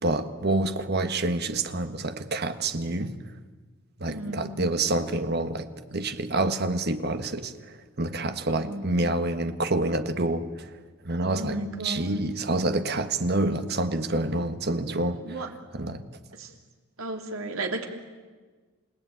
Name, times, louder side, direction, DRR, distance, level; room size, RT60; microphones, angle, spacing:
voice 1, 0.0-3.1 4.0-10.7 11.0-11.6 11.8-15.4 15.7-16.0, right 2 dB, 50° right, 9 dB, 1.4 m, -27 dB
voice 2, 4.1-4.6 8.5-9.1 11.2-12.2 15.2-15.5 16.4-16.5 17.0-17.9, right 2 dB, 80° right, 4 dB, 2.9 m, -34 dB
28.5 x 17.5 x 9.4 m, 1.4 s
head